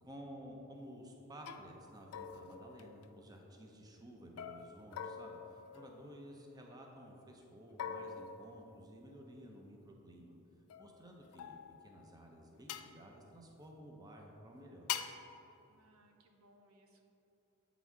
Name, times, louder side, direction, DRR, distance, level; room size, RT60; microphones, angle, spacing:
voice 1, 0.0-10.4 10.8-14.9, equal, 20° right, 1 dB, 0.6 m, -53 dB
sound 1, 0.8-1.0 1.5-1.7 2.1-3.5 4.4-6.6 7.8-9.2 10.7-12.0 12.7-12.9 14.9-15.3, left 8 dB, 80° left, 0.4 m, -45 dB
voice 2, 5.6-6.1 6.7-6.8 15.7-17.0, right 1 dB, 70° right, 3 dB, 0.7 m, -68 dB
8.3 x 4.0 x 4.6 m, 3.0 s
head